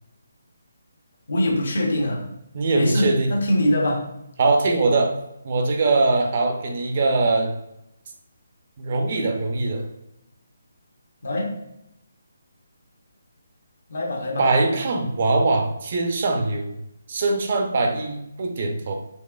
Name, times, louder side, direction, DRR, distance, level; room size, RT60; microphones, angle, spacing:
voice 1, 1.3-2.2 2.7-4.1 11.2-11.6 13.9-14.5, left 1 dB, 65° left, -1 dB, 1.0 m, -23 dB
voice 2, 2.5-3.3 4.4-5.1 5.4-7.6 8.8-9.9 14.4-16.7 17.1-19.0, right 3 dB, 45° right, 3 dB, 0.6 m, -22 dB
4.2 x 2.4 x 2.4 m, 0.81 s
figure-of-eight pair, 150°, 0 cm